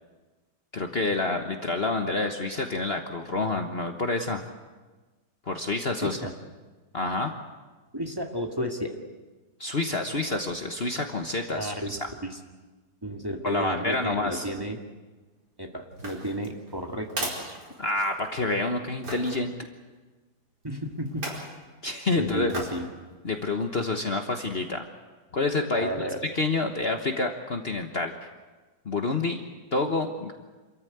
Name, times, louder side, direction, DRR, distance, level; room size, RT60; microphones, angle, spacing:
voice 1, 0.7-4.4 5.5-6.2 6.9-7.3 9.6-12.0 13.4-14.5 17.8-19.5 21.8-22.5 23.2-24.8 25.3-28.2 28.8-29.4 29.7-30.3, left 3 dB, 40° left, 4 dB, 1.4 m, -28 dB
voice 2, 6.0-6.3 7.9-9.0 11.6-11.9 12.2-12.4 13.0-14.8 15.6-17.6 20.6-21.3 22.2-22.8 25.8-26.2, equal, 15° right, 1 dB, 2.0 m, -32 dB
sound 1, 15.9-18.4 19.0-19.4 21.1-21.5 22.5-22.9 23.3-23.4, right 1 dB, 80° right, 5.3 m, -36 dB
27.5 x 14.0 x 9.3 m, 1.3 s
omnidirectional pair, 1.8 m